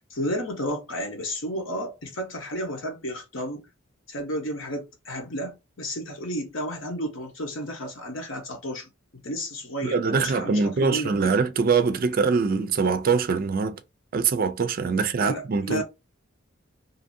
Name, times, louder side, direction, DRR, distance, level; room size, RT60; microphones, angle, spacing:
voice 1, 0.0-3.7 4.1-11.3 15.2-15.8, equal, 70° left, 1.0 m, -32 dB
voice 2, 9.8-13.8 14.1-15.8, right 5 dB, 45° right, 0.4 m, -23 dB
2.8 x 2.6 x 2.6 m
head